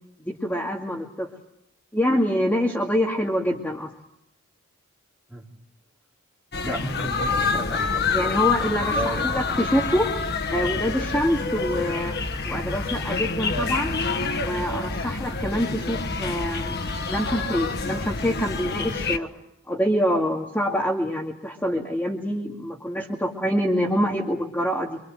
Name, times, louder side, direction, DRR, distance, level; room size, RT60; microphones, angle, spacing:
voice 1, 0.2-1.3 1.9-3.9 8.1-10.1 10.5-14.0 14.4-19.3 19.7-25.0, equal, 10° left, -1 dB, 2.4 m, -26 dB
sound 1, 6.5-19.2, left 4 dB, 50° left, 1.3 m, -27 dB
voice 2, 6.6-8.3 8.9-9.2 17.4-17.5, equal, 5° right, -3 dB, 4.2 m, -32 dB
26.0 x 24.5 x 8.0 m, 0.79 s
head